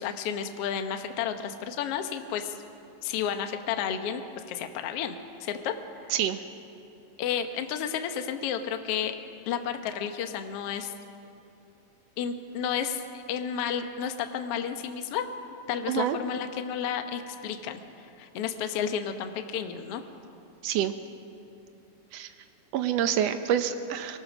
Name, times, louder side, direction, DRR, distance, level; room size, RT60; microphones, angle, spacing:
voice 1, 0.0-2.6 3.0-4.2 4.5-5.1 5.4-6.1 7.2-9.2 9.5-10.9 12.2-15.2 15.7-20.0, left 8 dB, 65° left, 7 dB, 1.6 m, -32 dB
voice 2, 6.1-6.4 15.9-16.2 20.6-20.9 22.1-22.3 22.7-24.2, right 10 dB, 85° right, 9 dB, 1.4 m, -27 dB
24.0 x 19.5 x 6.2 m, 2.7 s
omnidirectional pair, 3.9 m